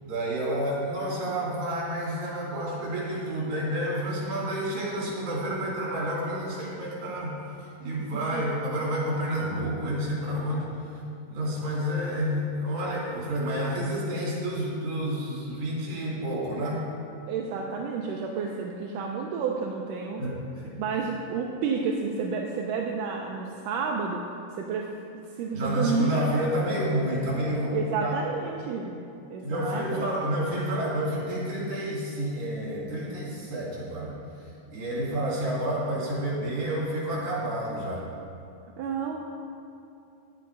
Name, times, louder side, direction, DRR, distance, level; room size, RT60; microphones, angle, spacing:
voice 1, 0.0-10.7 11.3-16.8 20.2-20.7 25.5-27.7 28.0-28.1 29.4-34.1 34.4-38.1, right 1 dB, 50° right, -6 dB, 3.9 m, -29 dB
voice 2, 8.0-8.4 17.3-20.2 20.8-24.3 24.5-24.9 25.3-26.2 27.7-29.0 29.3-30.1 38.8-39.2, right 5 dB, 80° right, 0 dB, 2.3 m, -30 dB
11.5 x 9.5 x 4.8 m, 2.7 s
omnidirectional pair, 3.8 m